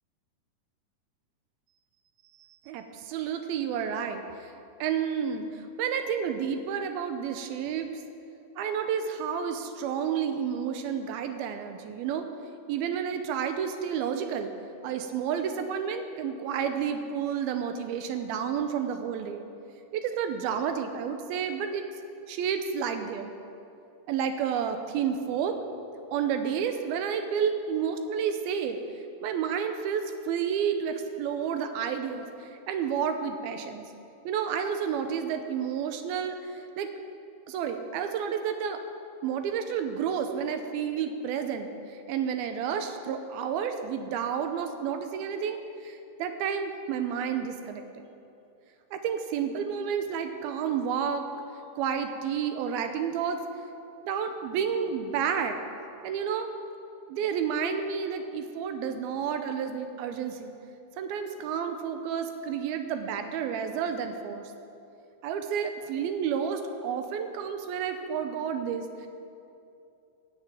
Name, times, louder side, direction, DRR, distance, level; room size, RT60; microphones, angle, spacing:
voice 1, 2.4-4.2 4.8-7.9 8.6-12.3 12.7-14.5 14.8-19.4 19.9-21.8 22.3-23.3 24.1-25.6 26.1-28.8 29.2-32.3 32.7-33.8 34.2-36.9 37.5-38.8 39.2-48.0 48.9-51.2 51.8-53.4 54.0-55.6 56.0-56.5 57.1-60.5 61.0-64.4 65.2-69.1, right 7 dB, 80° right, 7 dB, 2.6 m, -30 dB
15.0 x 6.7 x 8.9 m, 2.6 s
omnidirectional pair, 4.5 m